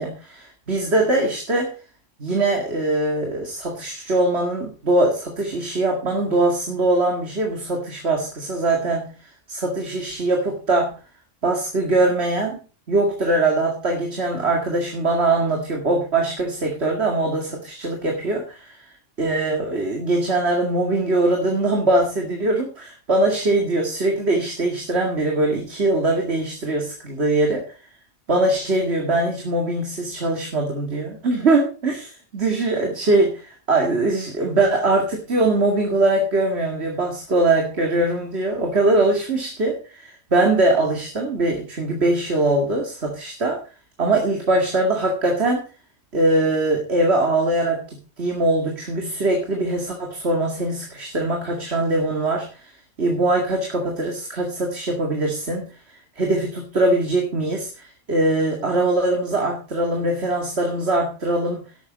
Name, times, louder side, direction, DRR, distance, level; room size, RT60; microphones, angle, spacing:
voice 1, 0.0-1.7 2.2-9.1 9.5-10.9 11.4-12.6 12.9-18.8 19.2-27.6 28.3-43.6 44.0-45.6 46.1-52.5 53.0-55.7 56.2-61.6, right 2 dB, 80° right, 1 dB, 2.4 m, -22 dB
11.5 x 9.1 x 5.0 m, 0.35 s
omnidirectional pair, 1.1 m